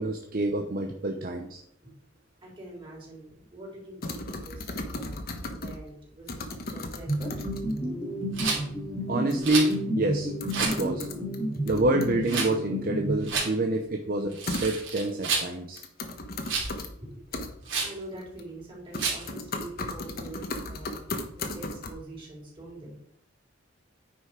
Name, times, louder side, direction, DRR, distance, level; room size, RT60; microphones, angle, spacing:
voice 1, 0.0-1.6 9.1-10.3 10.6-11.1 11.7-15.8, right 2 dB, 50° right, 4 dB, 0.8 m, -27 dB
voice 2, 2.4-6.4 6.7-7.3 7.8-8.1 16.7-17.5 17.8-21.0 21.3-23.0, right 1 dB, 25° right, -3 dB, 4.0 m, -44 dB
sound 1, 4.0-5.9 6.3-7.8 9.3-9.4 9.7-9.8 10.4-11.4 11.7-12.5 14.5-15.1 15.7-16.9 17.3-17.5 18.2-18.6 18.9-21.9, left 2 dB, 50° left, 1.2 m, -36 dB
sound 2, 7.1-13.8, equal, 20° left, 2.3 m, -31 dB
Rattle, 8.3-8.6 9.4-9.7 10.5-10.8 12.2-12.5 13.2-13.5 14.3-15.5 16.4-16.7 17.7-18.0 19.0-19.3, right 4 dB, 75° right, 3.2 m, -29 dB
9.6 x 5.6 x 4.8 m, 0.69 s
head